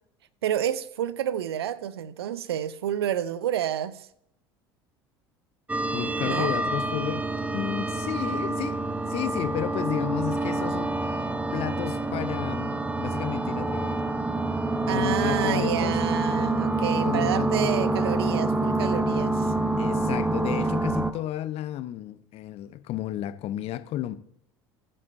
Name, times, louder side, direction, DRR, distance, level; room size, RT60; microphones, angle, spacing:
voice 1, 0.4-4.1 6.2-6.5 14.9-19.5, right 10 dB, 80° right, 0.5 m, -29 dB
sound 1, 5.7-21.1, right 2 dB, 10° right, 0.8 m, -27 dB
voice 2, 5.9-7.2 7.5-8.8 9.1-11.3 11.5-14.1 14.9-16.0 17.0-17.7 19.8-24.2, left 12 dB, 50° left, 0.7 m, -32 dB
15.5 x 7.6 x 2.7 m
hypercardioid pair, 70°, 13 cm